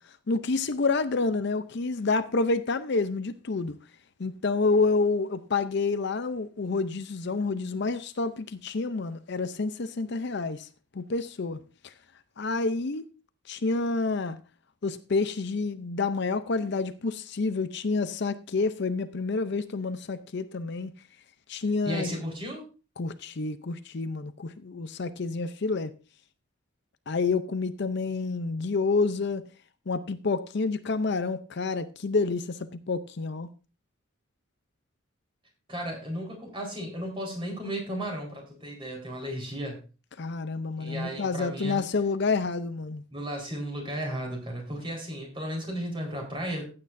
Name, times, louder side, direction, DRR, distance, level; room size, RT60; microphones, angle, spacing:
voice 1, 0.3-3.8 4.2-10.7 10.9-11.9 12.4-13.1 13.5-14.4 14.8-20.9 21.5-22.1 23.0-25.9 27.1-29.4 29.9-32.6 32.9-33.5 40.2-43.0, left 3 dB, 55° left, 0.6 m, -28 dB
voice 2, 21.8-22.7 35.7-39.8 40.8-41.8 43.1-46.6, equal, 25° right, 4.3 m, -34 dB
15.0 x 8.7 x 2.6 m
head